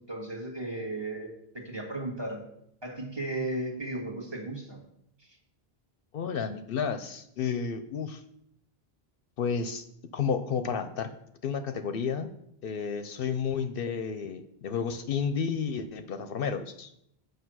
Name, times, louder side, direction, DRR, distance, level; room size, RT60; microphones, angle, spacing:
voice 1, 0.1-2.4 2.8-4.8 5.2-5.3, right 2 dB, 25° right, 2 dB, 1.5 m, -35 dB
voice 2, 6.1-8.2 9.4-9.9 10.1-11.1 11.4-12.3 12.6-16.9, left 6 dB, 65° left, 10 dB, 0.7 m, -31 dB
8.0 x 5.0 x 6.2 m, 0.77 s
omnidirectional pair, 1.0 m